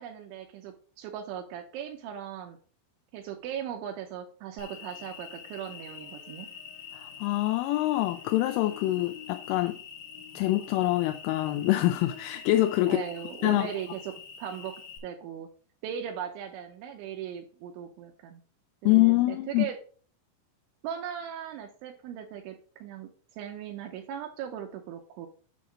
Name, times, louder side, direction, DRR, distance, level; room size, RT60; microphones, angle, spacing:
voice 1, 0.0-2.6 3.1-6.5 12.9-15.5 15.8-18.4 18.8-19.8 20.8-23.1 23.4-25.3, right 9 dB, 80° right, 2.9 m, -38 dB
Cricket, 4.6-15.0, left 7 dB, 60° left, 2.0 m, -45 dB
voice 2, 6.9-9.8 10.4-13.0 13.4-13.7 18.9-19.7, left 17 dB, 85° left, 3.0 m, -25 dB
8.5 x 2.9 x 6.1 m
omnidirectional pair, 5.8 m